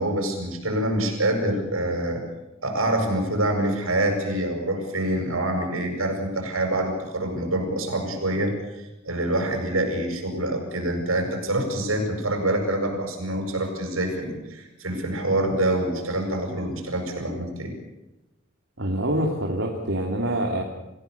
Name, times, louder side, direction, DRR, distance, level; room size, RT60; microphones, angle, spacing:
voice 1, 0.0-2.2 2.6-17.7, right 1 dB, 85° right, 3 dB, 7.8 m, -26 dB
voice 2, 18.8-20.6, right 1 dB, 65° right, -1 dB, 2.9 m, -25 dB
28.5 x 16.5 x 7.0 m, 0.98 s
head